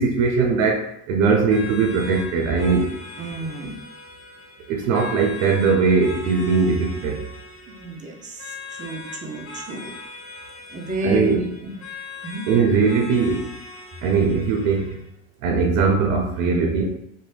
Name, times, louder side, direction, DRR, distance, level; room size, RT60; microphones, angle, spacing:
voice 1, 0.0-2.9 4.7-7.3 11.0-11.4 12.5-13.5 14.0-15.0 15.4-17.0, right 4 dB, 85° right, 2 dB, 0.5 m, -20 dB
sound 1, 1.5-15.1, left 4 dB, 35° left, 0.7 m, -40 dB
voice 2, 3.2-3.8 7.7-9.9 10.7-11.7 12.2-12.4, equal, 20° right, 1 dB, 0.5 m, -31 dB
2.6 x 2.2 x 3.2 m, 0.76 s
supercardioid pair, 115°, 38 cm